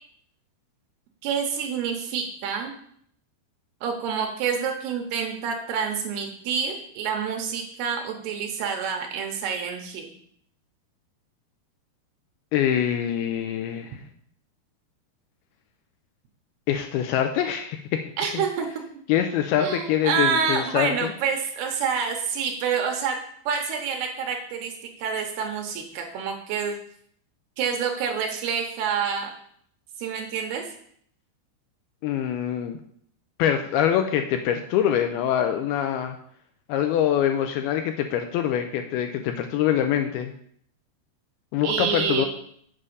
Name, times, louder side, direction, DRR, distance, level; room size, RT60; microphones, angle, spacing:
voice 1, 1.2-2.7 3.8-10.1 18.2-18.7 19.6-23.2 23.5-24.7 25.0-26.8 27.6-29.3 30.0-30.6 41.6-42.3, right 6 dB, 80° right, 3 dB, 2.8 m, -27 dB
voice 2, 12.5-14.0 16.7-18.0 18.3-18.4 19.1-21.1 32.0-32.8 33.4-36.2 36.7-40.3 41.5-42.3, left 10 dB, 80° left, 6 dB, 2.3 m, -24 dB
7.6 x 4.9 x 6.7 m, 0.65 s
omnidirectional pair, 4.9 m